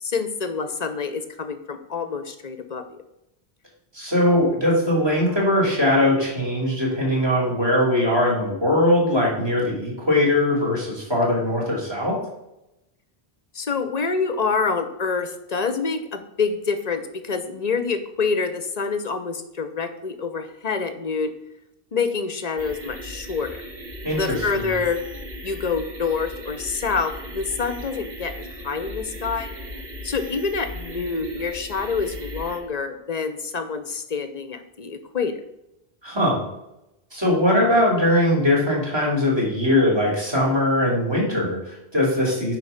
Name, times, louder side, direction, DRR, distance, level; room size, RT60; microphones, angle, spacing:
voice 1, 0.0-2.8 13.5-21.3 21.9-23.6 24.1-25.0 25.4-29.5 30.0-35.4, left 5 dB, 45° left, 9 dB, 0.8 m, -27 dB
voice 2, 3.9-12.2 24.0-24.7 36.0-36.4 37.1-42.6, left 1 dB, 25° right, -3 dB, 3.0 m, -21 dB
sound 1, 22.6-32.6, equal, 70° right, 2.0 m, -37 dB
9.5 x 4.0 x 5.7 m, 0.87 s
omnidirectional pair, 1.0 m